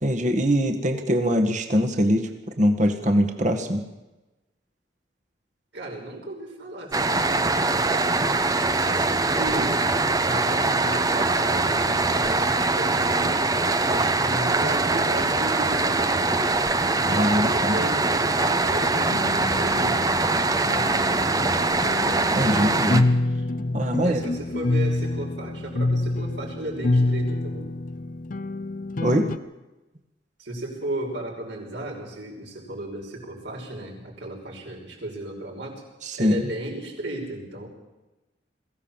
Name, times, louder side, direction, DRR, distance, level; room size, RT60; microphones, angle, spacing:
voice 1, 0.0-2.3 2.6-3.8 17.1-17.7 22.3-23.0 23.7-24.2 29.0-29.3 36.0-36.4, equal, 40° right, 5 dB, 1.8 m, -22 dB
voice 2, 5.7-9.8 10.2-13.5 13.8-16.4 16.9-20.1 20.7-21.6 24.0-27.7 30.4-35.8 36.1-37.7, right 1 dB, 75° right, -1 dB, 5.7 m, -35 dB
sound 1, 6.9-23.0, right 3 dB, 20° right, 0.8 m, -23 dB
sound 2, 18.9-29.4, left 2 dB, 45° left, 0.6 m, -27 dB
22.0 x 16.0 x 7.4 m, 1.1 s
head